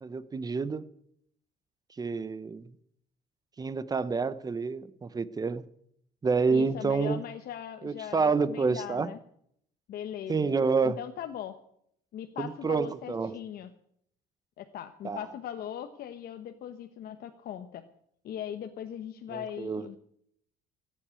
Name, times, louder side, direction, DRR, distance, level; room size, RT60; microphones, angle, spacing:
voice 1, 0.0-0.8 2.0-2.7 3.6-5.6 6.2-7.2 7.8-9.1 10.3-11.0 12.4-13.3 15.0-15.2 19.3-19.9, right 4 dB, 20° right, 15 dB, 0.8 m, -28 dB
voice 2, 6.5-9.2 9.9-10.6 10.8-11.6 12.1-13.7 14.6-17.8 18.2-20.0, left 10 dB, 65° left, 6 dB, 1.0 m, -39 dB
14.5 x 9.0 x 8.3 m, 0.71 s
cardioid pair, 110°, 17 cm